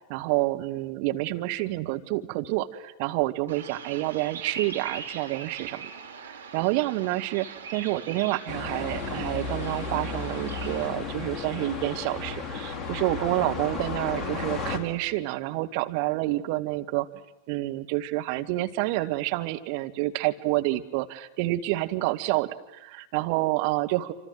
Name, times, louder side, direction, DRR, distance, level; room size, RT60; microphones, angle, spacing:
voice 1, 0.1-5.9 6.2-17.1 17.5-24.1, right 18 dB, 45° right, 7 dB, 1.7 m, -28 dB
Bird vocalization bird call bird song, 3.5-10.9, right 6 dB, 70° right, 2.7 m, -40 dB
sound 1, 8.5-14.8, left 4 dB, 15° left, 4.1 m, -33 dB
27.5 x 26.5 x 7.7 m, 0.98 s
figure-of-eight pair, 90°, 0 cm